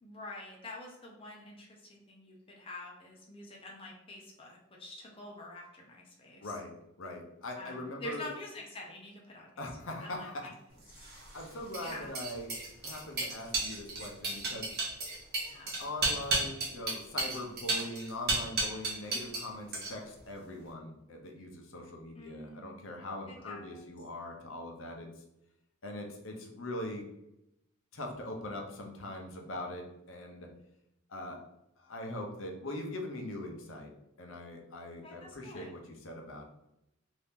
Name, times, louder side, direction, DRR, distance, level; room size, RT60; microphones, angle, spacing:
voice 1, 0.0-6.5 7.6-9.5 10.0-10.5 11.0-11.1 11.8-12.1 15.4-15.9 22.1-23.8 35.0-35.7, left 2 dB, 25° left, -1 dB, 0.6 m, -47 dB
voice 2, 6.4-8.3 9.6-10.5 11.2-14.7 15.8-25.1 25.8-27.1 27.9-30.5 31.1-31.4 31.8-33.9 34.2-36.4, left 1 dB, 70° left, 2 dB, 0.7 m, -41 dB
sound 1, 10.9-19.5 19.7-20.2, right 2 dB, 50° right, 1.0 m, -33 dB
2.8 x 2.6 x 3.5 m, 0.84 s
head